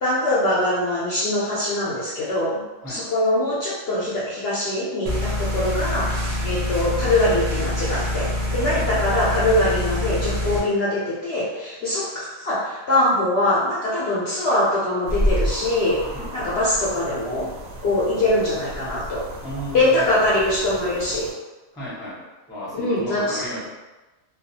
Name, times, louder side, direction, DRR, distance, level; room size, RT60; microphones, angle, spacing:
voice 1, 0.0-2.6 2.9-16.0 16.3-17.5 17.8-19.2 19.7-21.3 22.7-23.4, left 1 dB, 65° left, -7 dB, 0.7 m, -23 dB
sound 1, 5.1-10.6, left 1 dB, 90° right, 0.3 m, -25 dB
voice 2, 8.7-9.0 16.1-16.5 19.4-20.0 21.7-23.7, equal, 5° left, -8 dB, 0.5 m, -34 dB
sound 2, 15.0-21.3, equal, 60° right, 0.7 m, -30 dB
2.3 x 2.3 x 2.6 m, 1.1 s
omnidirectional pair, 1.4 m